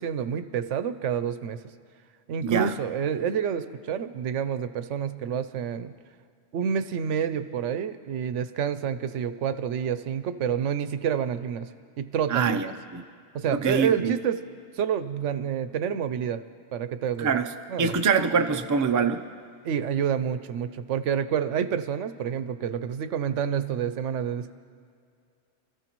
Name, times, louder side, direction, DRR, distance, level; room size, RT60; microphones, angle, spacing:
voice 1, 0.0-1.6 2.3-5.9 6.5-11.7 12.0-12.6 13.3-14.4 14.8-16.4 16.7-17.4 17.7-17.9 19.6-24.5, right 8 dB, 85° right, 12 dB, 1.0 m, -28 dB
voice 2, 2.4-2.8 12.3-12.7 12.9-13.0 13.5-14.1 17.2-17.5 17.8-19.2, right 5 dB, 30° right, 6 dB, 0.3 m, -24 dB
28.5 x 14.0 x 3.0 m, 2.3 s
omnidirectional pair, 1.2 m